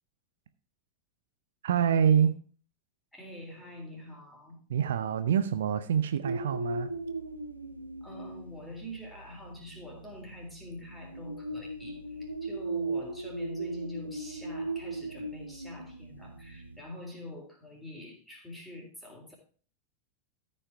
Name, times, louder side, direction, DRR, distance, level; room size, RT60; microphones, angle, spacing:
voice 1, 1.6-2.4 4.7-6.9, right 8 dB, 60° right, 0.6 m, -26 dB
voice 2, 3.1-4.6 8.0-19.3, left 1 dB, 5° left, 3.6 m, -45 dB
sound 1, 6.2-16.8, right 2 dB, 85° right, 1.1 m, -38 dB
13.5 x 5.6 x 4.6 m
figure-of-eight pair, 90°, 0 cm